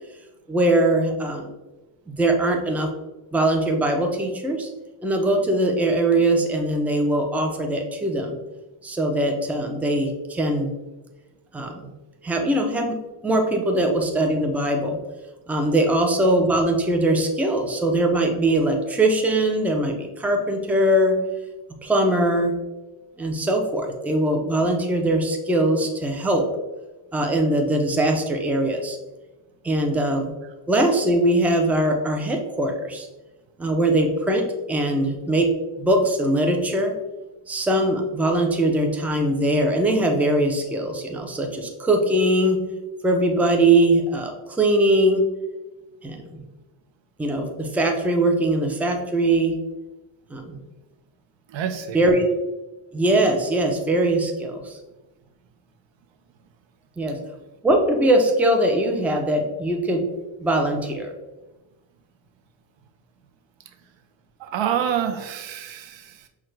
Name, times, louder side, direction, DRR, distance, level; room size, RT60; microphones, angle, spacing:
voice 1, 0.5-1.5 2.1-2.9 3.3-4.7 5.0-8.4 8.8-10.7 11.5-11.9 12.2-13.0 13.2-15.0 15.5-21.2 21.8-22.5 23.2-26.4 27.1-29.0 29.6-30.3 30.7-33.1 33.6-35.5 35.8-36.9 37.5-42.6 43.0-45.2 46.0-46.4 47.2-49.5 50.3-50.6 51.9-52.3 52.9-54.8 57.0-57.2 57.6-60.0 60.4-61.1, right 1 dB, 5° right, 3 dB, 0.5 m, -21 dB
voice 2, 51.5-52.0 64.4-66.3, right 9 dB, 65° right, 7 dB, 0.6 m, -27 dB
5.7 x 2.4 x 3.2 m, 1.1 s
cardioid pair, 90°, 50 cm